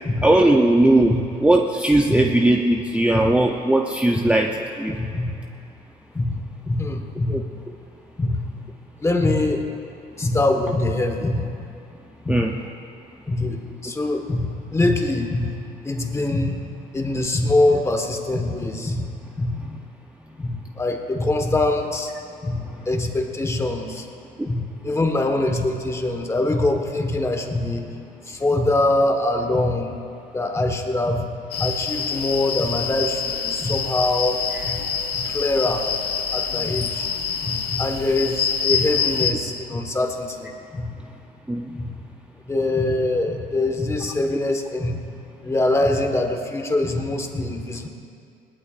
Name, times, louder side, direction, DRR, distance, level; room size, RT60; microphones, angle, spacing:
voice 1, 0.2-1.1 1.4-4.5 4.8-5.0 7.3-7.4 12.3-12.5 34.5-34.6 41.5-41.7, right 1 dB, 5° right, 1 dB, 0.7 m, -18 dB
voice 2, 4.9-5.4 6.1-7.5 8.2-8.5 9.0-9.7 10.2-11.5 12.2-12.5 13.3-19.8 20.4-22.1 22.4-24.1 24.5-29.9 30.3-34.8 35.1-35.9 36.3-41.0 41.7-42.0 42.5-45.0 45.4-47.9, left 2 dB, 15° left, 3 dB, 1.4 m, -24 dB
sound 1, 31.5-39.3, left 7 dB, 70° left, 1.4 m, -26 dB
21.0 x 18.5 x 2.5 m, 2.5 s
cardioid pair, 110°, 17 cm